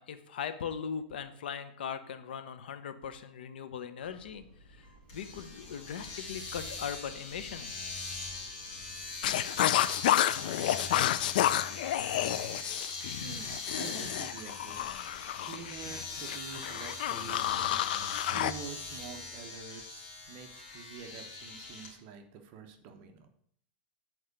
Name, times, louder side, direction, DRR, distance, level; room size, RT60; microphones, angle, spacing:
voice 1, 0.0-4.4 4.7-4.9 5.1-7.9, left 7 dB, 80° left, 10 dB, 0.9 m, -39 dB
sound 1, 4.0-9.2, equal, 20° left, 2.1 m, -57 dB
Domestic sounds home sounds, 5.1-21.9, left 3 dB, 50° left, 2.6 m, -42 dB
sound 2, 9.2-18.5, left 12 dB, 65° left, 0.3 m, -30 dB
voice 2, 13.2-14.9 15.4-17.8 18.3-23.3, right 6 dB, 40° right, 6 dB, 0.9 m, -47 dB
7.7 x 4.6 x 6.5 m, 0.65 s
supercardioid pair, 160°, 5 cm